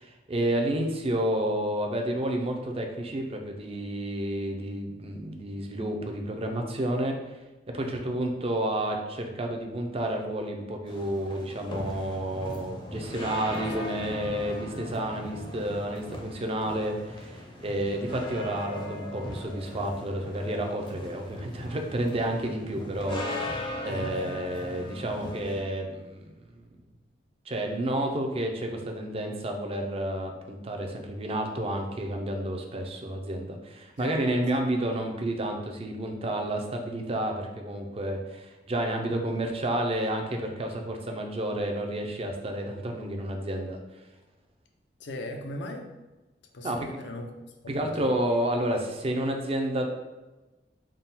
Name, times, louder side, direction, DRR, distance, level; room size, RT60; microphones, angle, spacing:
voice 1, 0.0-7.2 7.7-26.7 27.5-43.8 46.6-46.9 47.7-49.9, right 1 dB, 35° right, 3 dB, 0.5 m, -30 dB
voice 2, 7.8-8.1 13.6-13.7 14.1-14.2 23.8-24.3 34.0-34.2 45.0-45.9 46.5-47.3 47.6-48.0, left 1 dB, 80° left, 3 dB, 0.5 m, -39 dB
sound 1, 10.9-25.6, left 1 dB, 25° left, 0.6 m, -39 dB
3.6 x 2.2 x 4.1 m, 1.1 s
head